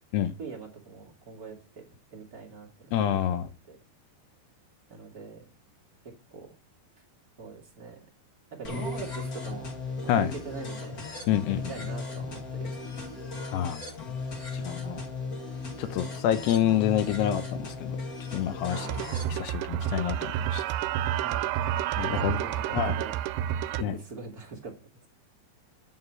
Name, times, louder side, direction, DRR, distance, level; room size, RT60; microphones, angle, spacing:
voice 1, 0.4-3.4 3.7-3.8 4.9-5.4 6.0-6.5 7.4-8.0 8.5-9.7 10.0-11.0 11.5-13.0 18.7-19.0 21.2-21.5 22.1-23.2 23.8-24.8, right 4 dB, 30° right, -1 dB, 1.7 m, -42 dB
voice 2, 2.9-3.5 10.1-10.3 11.3-11.7 13.5-13.8 14.5-15.0 15.8-18.0 18.3-19.0 19.3-20.6 22.0-22.4 22.7-23.0 23.8-24.0, left 10 dB, 75° left, 11 dB, 2.9 m, -27 dB
sound 1, 8.6-19.3, left 3 dB, 50° left, 1.1 m, -36 dB
sound 2, 18.7-23.8, right 11 dB, 80° right, 2.7 m, -30 dB
9.6 x 6.6 x 7.6 m, 0.36 s
omnidirectional pair, 5.0 m